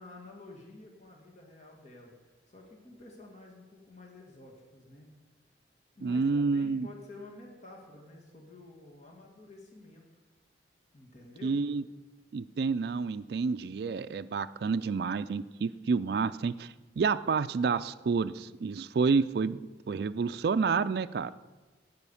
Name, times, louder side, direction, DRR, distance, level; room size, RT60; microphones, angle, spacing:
voice 1, 0.0-5.1 5.9-10.1 10.9-11.6, left 2 dB, 40° left, 0 dB, 1.8 m, -50 dB
voice 2, 6.0-6.9 11.4-11.8 12.3-19.6 19.9-21.3, right 5 dB, 60° right, 12 dB, 0.3 m, -29 dB
9.2 x 9.0 x 7.1 m, 1.2 s
head